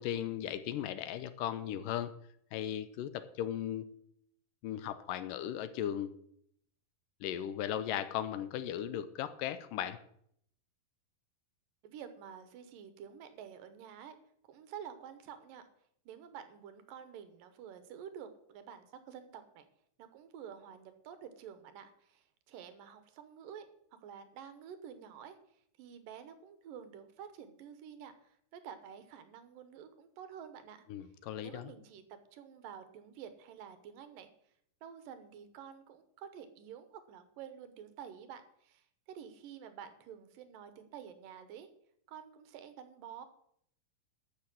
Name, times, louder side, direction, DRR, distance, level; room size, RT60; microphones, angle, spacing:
voice 1, 0.0-2.1 2.5-3.9 4.6-6.1 7.2-10.0 30.9-31.7, left 10 dB, 80° left, 13 dB, 2.2 m, -37 dB
voice 2, 11.8-14.2 14.4-15.6 16.1-19.7 20.0-25.4 25.8-30.8 31.4-34.3 34.8-41.7 42.1-43.3, right 8 dB, 75° right, 10 dB, 2.6 m, -49 dB
12.5 x 5.8 x 7.6 m, 0.69 s
omnidirectional pair, 4.1 m